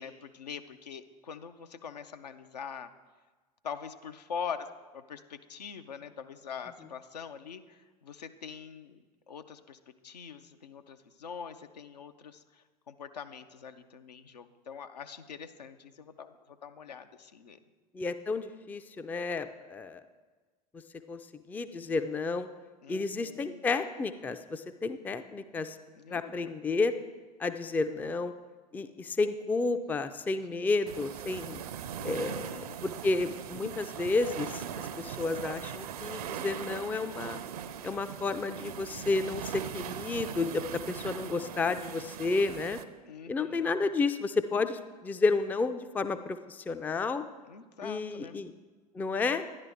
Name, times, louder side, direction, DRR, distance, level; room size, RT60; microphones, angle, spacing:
voice 1, 0.0-2.9 3.6-4.7 4.9-17.6 22.8-23.6 25.9-26.6 32.0-32.8 43.1-43.8 47.4-48.4, left 6 dB, 75° left, 8 dB, 0.6 m, -44 dB
voice 2, 17.9-20.0 21.1-21.2 21.5-22.5 22.9-25.8 26.1-26.9 27.4-28.3 28.7-31.6 32.0-37.4 37.8-42.8 43.3-47.2 47.8-48.5 48.9-49.4, left 3 dB, 10° left, 10 dB, 0.3 m, -31 dB
sound 1, 30.9-42.8, right 8 dB, 65° right, 0.6 m, -40 dB
10.5 x 10.5 x 3.5 m, 1.3 s
figure-of-eight pair, 80°, 21 cm